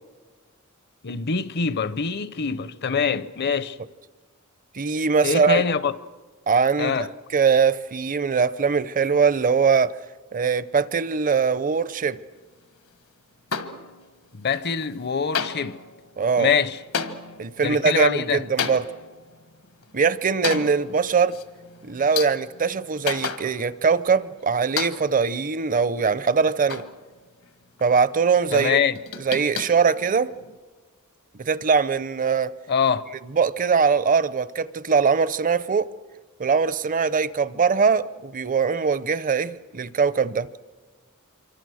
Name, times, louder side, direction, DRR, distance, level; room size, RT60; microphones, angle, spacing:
voice 1, 1.0-3.8 5.2-6.0 6.8-7.1 14.3-15.8 16.4-16.8 17.6-18.4 28.5-29.0 32.7-33.0, left 6 dB, 50° left, 0.7 m, -24 dB
voice 2, 4.7-5.6 6.5-7.1 7.3-9.9 10.3-12.2 16.2-16.5 17.4-18.8 19.9-21.4 21.8-26.8 27.8-28.8 29.2-30.3 31.4-32.5 33.3-35.9 36.4-40.5, right 5 dB, 40° right, 0.7 m, -21 dB
sound 1, 13.5-14.3 14.5-15.1 15.3-23.9 24.2-24.3 24.8-25.3 25.8-27.5 27.8-28.2 28.6-30.6, left 6 dB, 75° left, 1.4 m, -33 dB
26.5 x 24.5 x 6.4 m
head